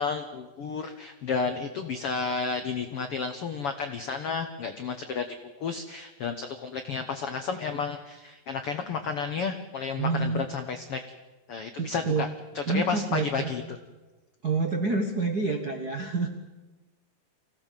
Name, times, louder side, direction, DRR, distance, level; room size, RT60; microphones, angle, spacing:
voice 1, 0.0-5.3 5.6-11.0 11.5-12.3 12.5-13.6, left 5 dB, 80° left, 7 dB, 1.3 m, -31 dB
voice 2, 10.0-10.5 11.8-12.2 12.7-13.8 14.4-16.3, right 4 dB, 70° right, 4 dB, 0.9 m, -28 dB
24.5 x 17.0 x 7.5 m, 1.2 s
omnidirectional pair, 4.3 m